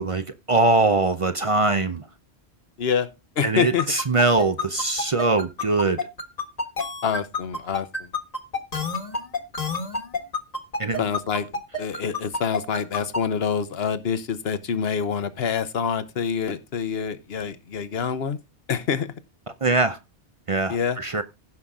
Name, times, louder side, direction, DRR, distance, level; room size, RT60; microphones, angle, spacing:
voice 1, 0.0-2.0 3.4-6.1 10.8-11.0 19.6-20.0 20.5-21.2, right 3 dB, 35° right, 0.6 m, -22 dB
voice 2, 2.8-3.1 3.4-3.9 7.0-8.1 11.0-18.4 18.7-19.1 20.7-21.0, left 7 dB, 65° left, 1.2 m, -26 dB
sound 1, 3.6-13.2, left 3 dB, 35° left, 1.5 m, -28 dB
15.5 x 5.7 x 3.7 m
omnidirectional pair, 1.1 m